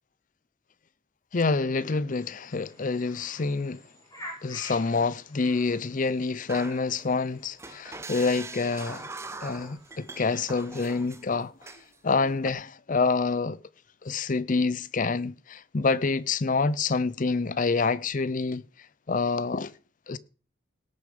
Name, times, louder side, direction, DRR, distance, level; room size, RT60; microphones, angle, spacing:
voice 1, 1.3-3.8 4.4-9.1 9.4-11.5 12.0-13.6 14.0-18.6 19.1-19.7 20.1-20.2, left 4 dB, 45° left, 0.6 m, -27 dB
sound 1, 2.1-11.1, left 1 dB, 20° left, 5.3 m, -50 dB
sound 2, 6.5-7.3 7.6-11.2 11.6-11.9 12.3-12.5, right 3 dB, 15° right, 0.5 m, -42 dB
18.0 x 6.8 x 5.0 m
head